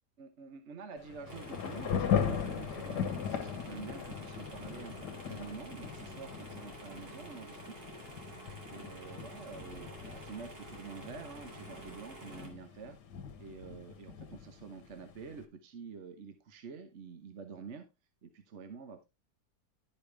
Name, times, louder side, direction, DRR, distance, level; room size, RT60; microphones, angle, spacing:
voice 1, 0.2-7.7 8.7-13.0 13.4-17.9 18.2-19.1, right 5 dB, 50° right, 7 dB, 1.1 m, -47 dB
Thunder / Rain, 1.0-15.4, left 8 dB, 85° left, 1.6 m, -39 dB
sound 1, 1.3-12.5, right 2 dB, 70° right, 2.8 m, -50 dB
11.5 x 5.0 x 3.3 m, 0.26 s
omnidirectional pair, 1.7 m